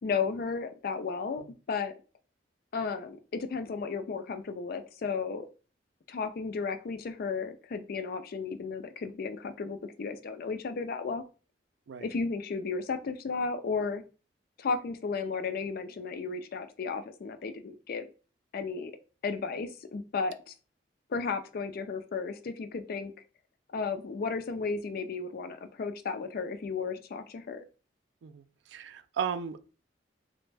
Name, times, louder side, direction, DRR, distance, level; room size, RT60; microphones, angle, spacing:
voice 1, 0.0-1.9 2.7-5.5 6.1-11.2 12.0-14.0 14.6-18.1 18.5-18.9 19.2-20.5 21.1-23.1 23.7-27.7, left 4 dB, 55° left, 9 dB, 0.4 m, -34 dB
voice 2, 28.2-29.7, right 7 dB, 75° right, 11 dB, 0.3 m, -36 dB
3.4 x 2.1 x 3.2 m, 0.35 s
head